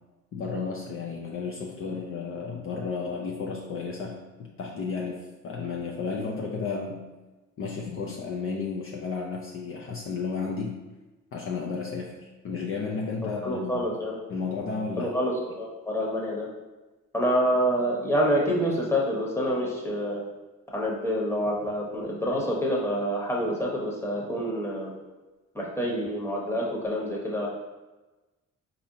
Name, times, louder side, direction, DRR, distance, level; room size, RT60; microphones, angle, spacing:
voice 1, 0.3-7.0 7.6-10.8 11.3-14.0 14.3-15.1, left 4 dB, 45° left, -1 dB, 0.5 m, -33 dB
voice 2, 13.4-14.2 15.0-16.5 17.1-20.2 20.7-24.9 25.5-27.5, equal, 10° left, -3 dB, 0.9 m, -27 dB
4.1 x 2.8 x 2.7 m, 1.1 s
cardioid pair, 90°, 30 cm